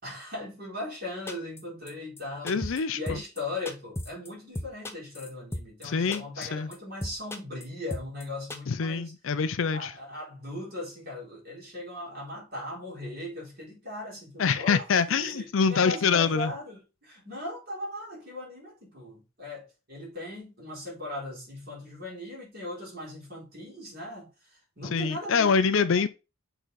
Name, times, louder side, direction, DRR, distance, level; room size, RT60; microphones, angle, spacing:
voice 1, 0.0-9.1 9.7-25.6, left 1 dB, 45° right, 4.1 m, -39 dB
sound 1, 1.3-1.6 1.9-2.0 2.2-2.3 2.5-2.8 3.1-3.4 3.7-4.3 4.6-5.9 6.1-6.5 6.7-6.8 7.0-7.6 7.9-8.2 8.5-8.6, left 1 dB, 10° left, 0.7 m, -35 dB
voice 2, 2.4-3.2 5.8-6.7 8.7-9.9 14.4-16.5 24.9-26.1, left 5 dB, 65° left, 0.5 m, -25 dB
6.3 x 3.9 x 4.0 m
head